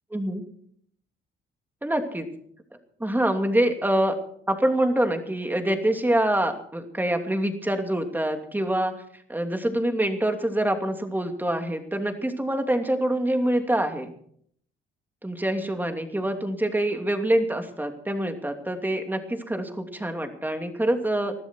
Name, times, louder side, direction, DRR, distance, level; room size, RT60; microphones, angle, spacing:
voice 1, 0.1-0.4 1.8-2.3 3.0-4.1 4.5-8.9 9.3-14.1 15.2-21.3, right 1 dB, 10° right, 5 dB, 2.9 m, -25 dB
21.0 x 13.0 x 4.6 m, 0.63 s
cardioid pair, 90°, 20 cm